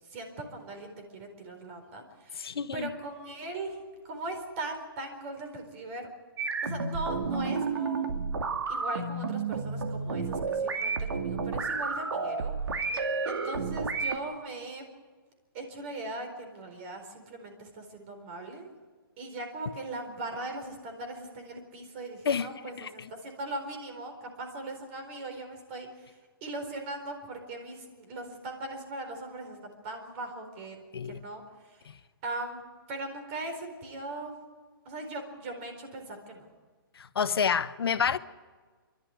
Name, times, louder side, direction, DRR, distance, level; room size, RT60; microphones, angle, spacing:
voice 1, 0.0-3.8 4.0-6.1 6.6-8.2 8.7-14.9 15.5-18.7 19.2-31.9 32.2-32.6 32.9-34.3 34.8-36.5, right 2 dB, 30° right, 4.3 m, -40 dB
voice 2, 2.4-2.9 22.2-22.9 30.9-31.2 31.9-32.0 37.0-38.2, left 6 dB, 80° left, 1.1 m, -29 dB
sound 1, 6.4-14.2, right 4 dB, 85° right, 2.4 m, -31 dB
29.0 x 12.5 x 9.7 m
hypercardioid pair, 160°, 12 cm